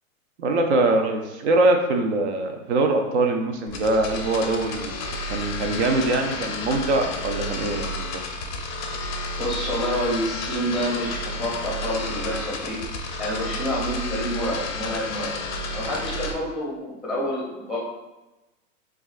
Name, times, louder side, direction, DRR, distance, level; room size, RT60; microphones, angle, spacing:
voice 1, 0.4-8.2, right 2 dB, 55° right, 4 dB, 0.6 m, -23 dB
sound 1, 3.7-16.3, left 2 dB, 35° left, 0.5 m, -31 dB
voice 2, 9.4-12.8 13.2-15.4 15.7-17.9, equal, ahead, -4 dB, 0.7 m, -28 dB
6.1 x 2.4 x 2.4 m, 1.0 s
hypercardioid pair, 145°, 41 cm